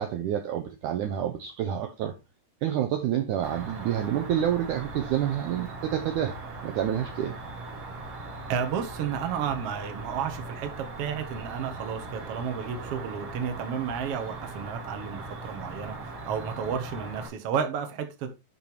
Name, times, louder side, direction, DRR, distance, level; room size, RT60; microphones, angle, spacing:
voice 1, 0.0-2.1 2.6-7.4, right 10 dB, 85° right, 1.7 m, -28 dB
Cricket, 3.4-17.3, right 2 dB, 45° right, 2.7 m, -40 dB
voice 2, 8.5-18.3, right 7 dB, 70° right, 1.3 m, -32 dB
10.5 x 4.6 x 4.5 m
omnidirectional pair, 4.8 m